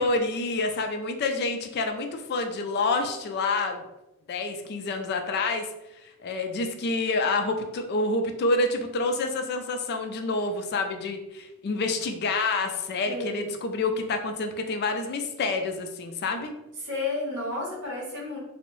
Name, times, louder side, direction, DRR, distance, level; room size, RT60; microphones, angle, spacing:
voice 1, 0.0-3.8 4.3-5.7 6.2-16.5, left 3 dB, 50° left, 6 dB, 0.3 m, -28 dB
voice 2, 13.0-13.5 16.8-18.4, left 2 dB, 55° right, -3 dB, 1.1 m, -32 dB
3.4 x 2.0 x 3.0 m, 0.94 s
head